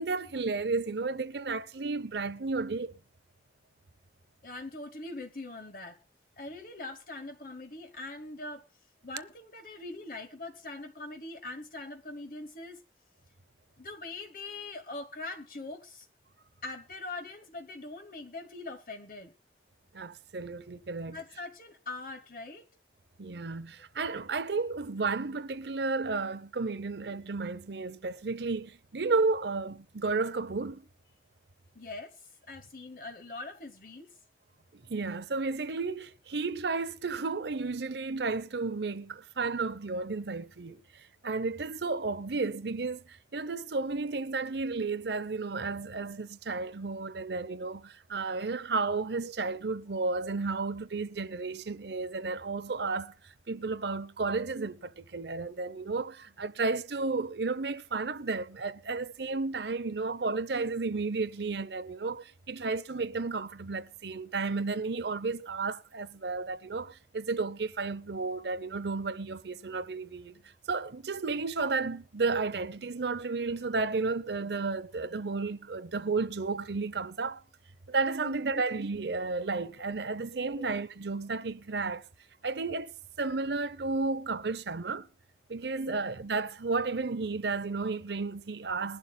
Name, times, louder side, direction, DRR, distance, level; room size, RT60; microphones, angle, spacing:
voice 1, 0.0-3.0 19.9-21.2 23.2-30.9 34.9-53.1 53.5-70.4 70.7-77.4 77.9-82.0 82.4-82.9 83.2-85.1 85.5-89.0, right 3 dB, 70° right, 0.8 m, -32 dB
voice 2, 4.4-6.0 6.4-8.6 9.0-12.8 13.8-16.1 16.6-19.3 21.1-22.6 31.7-34.2 78.2-78.6 80.6-80.7 85.8-86.0, left 2 dB, 50° left, 1.2 m, -42 dB
21.5 x 11.5 x 2.3 m
head